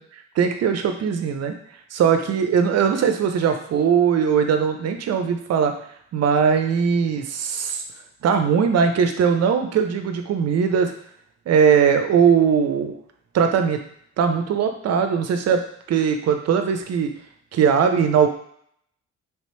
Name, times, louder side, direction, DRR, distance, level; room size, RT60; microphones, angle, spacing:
voice 1, 0.4-1.6 1.9-5.7 6.1-7.8 8.2-10.9 11.5-13.0 13.3-13.8 14.2-17.1 17.5-18.3, right 7 dB, 55° right, 6 dB, 0.6 m, -20 dB
3.4 x 2.9 x 3.2 m, 0.66 s
cardioid pair, 90°, 30 cm